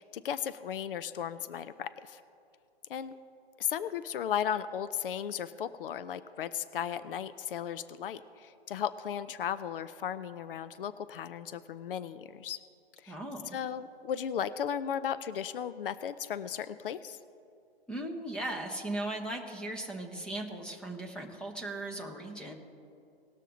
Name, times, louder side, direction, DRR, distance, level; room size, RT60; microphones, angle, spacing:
voice 1, 0.0-2.2 2.9-3.2 3.6-12.6 13.0-13.2 13.5-17.2, left 9 dB, 60° left, 14 dB, 0.6 m, -35 dB
voice 2, 13.1-13.6 17.9-22.5, right 1 dB, 5° left, 1 dB, 0.8 m, -38 dB
19.0 x 6.5 x 3.9 m, 2.6 s
hypercardioid pair, 135°, 31 cm